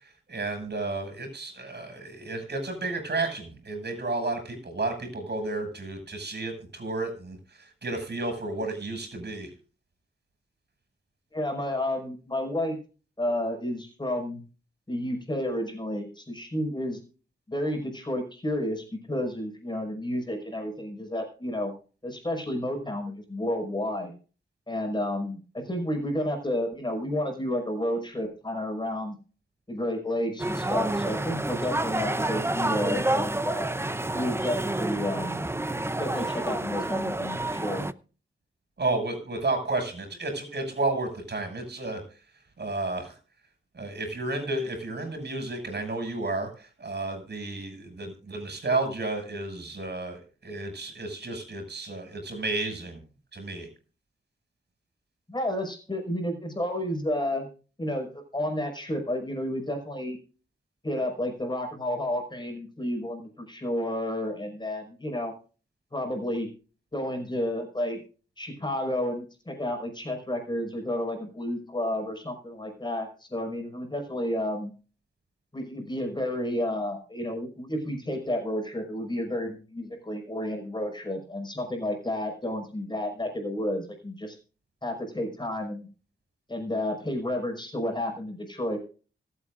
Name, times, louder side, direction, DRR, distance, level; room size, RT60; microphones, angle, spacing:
voice 1, 0.3-9.5 38.8-42.0 42.6-43.1 43.7-53.0 53.3-53.7, right 2 dB, 55° right, 5 dB, 6.5 m, -32 dB
voice 2, 11.3-12.8 13.2-14.4 14.9-17.0 17.5-21.7 22.0-24.1 24.7-29.2 29.7-33.7 34.1-35.4 36.0-37.9 55.3-57.5 57.8-60.2 60.8-65.3 65.9-66.5 66.9-68.0 68.4-74.7 75.5-84.4 84.8-85.9 86.5-88.8, left 1 dB, 20° left, 3 dB, 5.5 m, -31 dB
sound 1, 30.4-37.9, right 2 dB, 10° right, 0.7 m, -29 dB
25.5 x 8.6 x 2.6 m, 0.37 s
cardioid pair, 75°, 21 cm